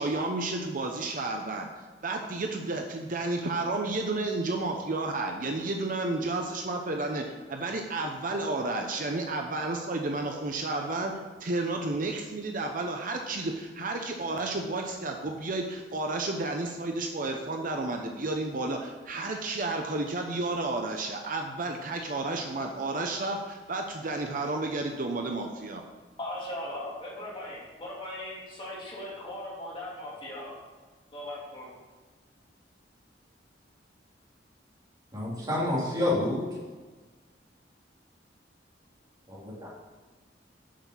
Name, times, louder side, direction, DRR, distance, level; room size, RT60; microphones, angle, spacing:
voice 1, 0.0-1.7 2.0-11.1 11.4-25.8, right 2 dB, 50° right, 3 dB, 0.8 m, -31 dB
voice 2, 26.2-30.6 31.1-31.7, left 1 dB, 30° left, -5 dB, 3.2 m, -38 dB
voice 3, 35.1-36.5 39.3-39.7, left 1 dB, 25° right, -6 dB, 3.4 m, -28 dB
7.5 x 6.5 x 7.3 m, 1.3 s
head